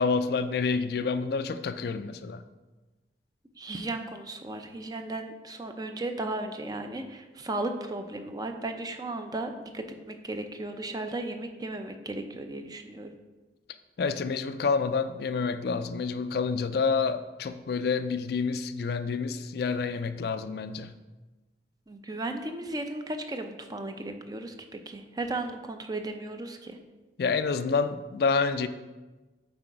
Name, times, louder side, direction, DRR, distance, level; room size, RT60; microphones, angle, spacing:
voice 1, 0.0-2.4 14.0-20.9 27.2-28.7, left 5 dB, 60° left, 10 dB, 0.3 m, -28 dB
voice 2, 3.6-13.2 21.9-26.8, right 2 dB, 20° right, 6 dB, 0.5 m, -35 dB
7.8 x 4.0 x 4.6 m, 1.2 s
head